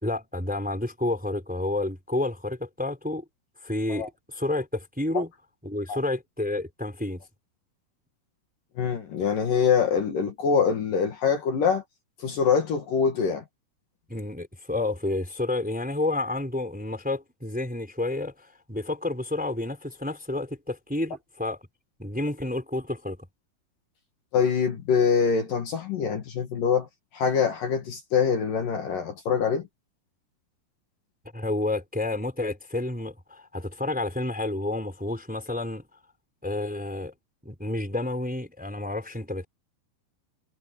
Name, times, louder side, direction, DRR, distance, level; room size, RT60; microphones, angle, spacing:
voice 1, 0.0-3.2 3.6-5.3 5.6-7.2 14.1-21.6 22.0-23.2 31.3-35.8 36.4-37.1 37.4-39.4, left 2 dB, ahead, 3.5 m, -30 dB
voice 2, 8.8-11.8 12.2-13.4 24.3-26.9 27.1-29.7, left 6 dB, 55° left, 3.4 m, -24 dB
omnidirectional pair, 4.9 m